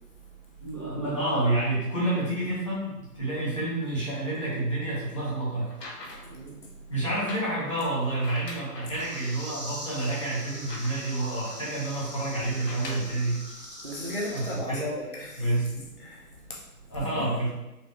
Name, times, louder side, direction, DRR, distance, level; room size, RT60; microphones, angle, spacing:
voice 1, 0.6-5.7 6.9-13.4 14.3-14.9 15.4-15.9 16.9-17.5, right 2 dB, 20° left, -9 dB, 0.9 m, -29 dB
sound 1, 5.6-6.4 7.1-9.3 9.8-9.9 10.2-11.3 12.5-13.2 14.1-14.2, left 2 dB, 85° left, 0.9 m, -43 dB
voice 2, 6.2-6.7 13.8-15.5 16.0-17.3, left 1 dB, 40° right, -4 dB, 0.4 m, -36 dB
sound 2, 9.0-14.6, equal, 35° left, 0.4 m, -42 dB
4.3 x 2.8 x 3.0 m, 0.96 s
figure-of-eight pair, 160°, 48 cm